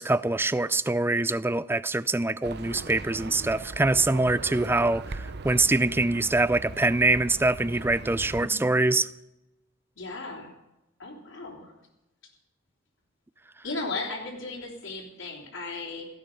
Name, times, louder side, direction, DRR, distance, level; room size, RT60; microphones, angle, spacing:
voice 1, 0.0-9.1, right 2 dB, 10° right, 0.4 m, -24 dB
Livestock farm animals working animals, 2.4-8.5, right 3 dB, 55° right, 0.8 m, -39 dB
voice 2, 8.4-8.8 10.0-10.5 11.0-11.7 13.6-16.1, left 3 dB, 75° left, 3.5 m, -36 dB
17.5 x 15.0 x 5.3 m
head